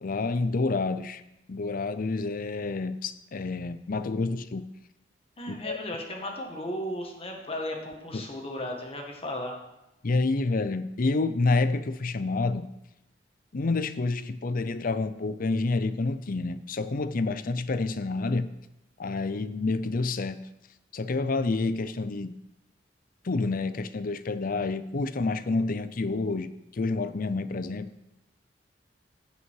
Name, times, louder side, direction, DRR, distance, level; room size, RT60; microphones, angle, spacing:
voice 1, 0.0-1.2 1.5-4.7 5.5-5.8 8.1-8.3 10.0-12.7 13.5-18.5 19.0-20.4 20.9-22.3 23.2-27.9, left 3 dB, 50° left, 12 dB, 0.6 m, -28 dB
voice 2, 5.4-9.6, left 1 dB, 35° left, 1 dB, 1.9 m, -35 dB
16.0 x 5.7 x 4.8 m, 0.90 s
head